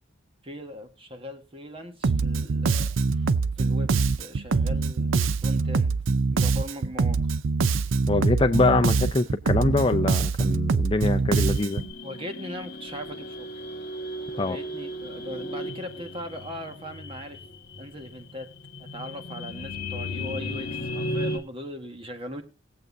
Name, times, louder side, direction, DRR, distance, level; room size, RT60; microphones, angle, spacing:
voice 1, 0.4-3.3 3.6-6.0 6.3-7.2 12.0-13.5 14.3-17.4 17.8-18.5 18.8-22.4, equal, 30° right, 6 dB, 1.6 m, -39 dB
Bass guitar, 2.0-11.9, right 4 dB, 80° right, 0.5 m, -24 dB
voice 2, 8.1-11.8 14.4-14.6, left 2 dB, 25° left, 6 dB, 0.5 m, -24 dB
sound 1, 11.3-21.4, left 1 dB, 50° left, 1.5 m, -35 dB
20.5 x 7.9 x 2.7 m, 0.29 s
head